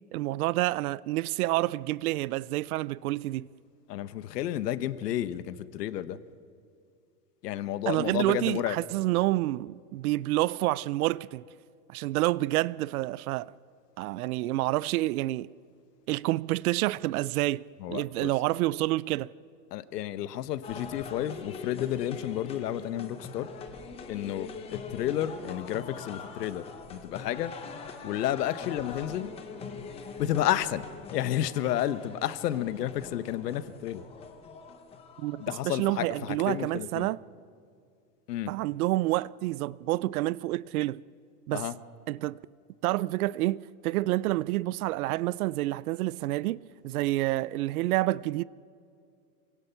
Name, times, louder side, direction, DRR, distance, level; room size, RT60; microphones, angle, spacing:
voice 1, 0.1-3.5 7.9-11.4 11.9-13.5 14.0-15.5 16.1-19.3 35.2-37.2 38.5-41.0 41.5-41.7 42.1-42.4 42.8-48.4, right 17 dB, 65° right, 0.5 m, -28 dB
voice 2, 3.9-6.2 7.4-8.8 17.8-18.3 19.7-23.5 24.1-27.5 28.0-29.3 30.2-30.9 31.1-34.0 35.4-37.1 38.3-38.5 41.5-41.8, left 12 dB, 85° left, 1.2 m, -31 dB
sound 1, 20.6-36.7, left 5 dB, 15° left, 0.8 m, -43 dB
27.0 x 17.5 x 5.8 m
supercardioid pair, 170°, 47 cm